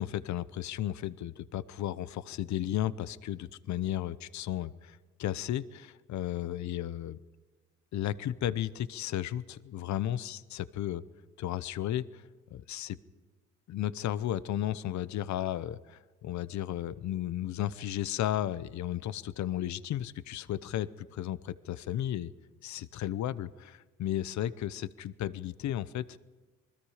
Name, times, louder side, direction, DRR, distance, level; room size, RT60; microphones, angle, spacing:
voice 1, 0.0-7.2 7.9-11.0 11.4-12.2 12.5-13.0 13.7-22.3 22.6-26.2, left 12 dB, 70° left, 17 dB, 0.8 m, -34 dB
27.5 x 21.0 x 5.0 m, 1.3 s
cardioid pair, 90°, 30 cm